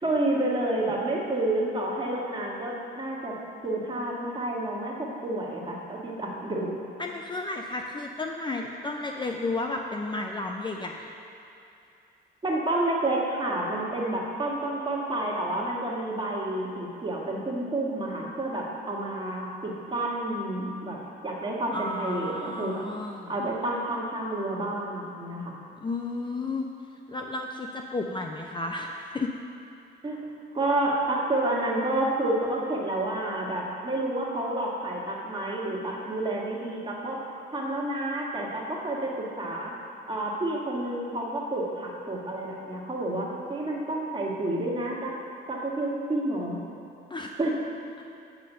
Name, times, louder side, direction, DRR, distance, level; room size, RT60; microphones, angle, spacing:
voice 1, 0.0-3.3 3.6-6.7 12.4-21.0 21.2-22.8 23.3-25.5 30.0-30.2 30.5-37.2 37.5-39.7 40.1-45.1 45.5-46.6 47.4-47.5, right 1 dB, 25° right, -3 dB, 1.8 m, -29 dB
voice 2, 7.0-11.1 21.7-23.3 25.8-26.7 27.1-29.3 47.1-47.4, left 2 dB, 25° left, 2 dB, 0.5 m, -32 dB
8.8 x 5.5 x 5.5 m, 2.7 s
cardioid pair, 90°, 20 cm